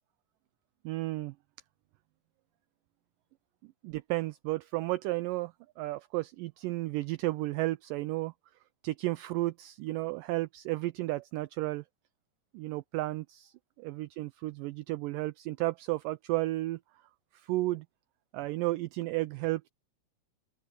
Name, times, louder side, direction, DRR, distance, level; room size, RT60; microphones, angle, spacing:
voice 1, 0.9-1.3 3.8-8.3 8.8-11.8 12.5-13.5 13.8-16.8 17.5-17.9 18.3-19.7, right 19 dB, 85° right, 1.9 m, -33 dB
open air
omnidirectional pair, 4.4 m